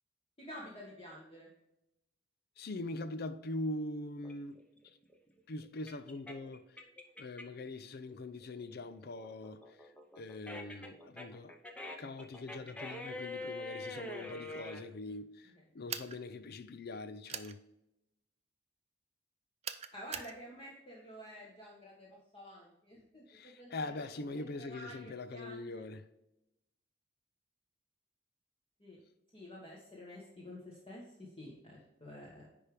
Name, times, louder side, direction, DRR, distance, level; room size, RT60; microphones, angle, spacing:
voice 1, 0.4-1.5 19.9-24.1 24.3-25.8 28.8-29.0 29.3-32.5, equal, 30° left, 1.5 m, -50 dB
voice 2, 2.6-4.7 5.5-6.8 7.2-11.6 12.0-17.6 23.3-26.1, left 2 dB, 55° left, 0.5 m, -42 dB
sound 1, 4.2-7.7 8.1-14.8, left 2 dB, 5° left, 0.8 m, -45 dB
sound 2, 15.9-16.2 17.3-17.5 19.6-20.3, right 8 dB, 35° right, 0.5 m, -41 dB
10.0 x 3.5 x 5.0 m
head